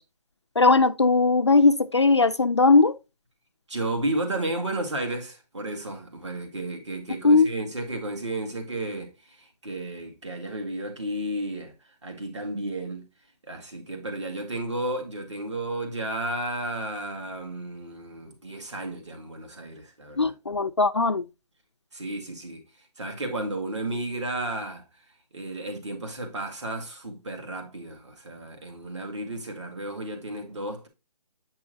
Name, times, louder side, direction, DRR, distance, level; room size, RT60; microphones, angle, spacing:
voice 1, 0.6-2.9 7.2-7.5 20.2-21.2, left 3 dB, 45° left, 0.4 m, -19 dB
voice 2, 3.7-11.7 12.0-13.1 13.5-20.3 21.9-22.6 23.0-24.8 25.3-30.9, right 2 dB, 45° right, 1.9 m, -33 dB
8.0 x 5.6 x 2.6 m
hypercardioid pair, 175°, 21 cm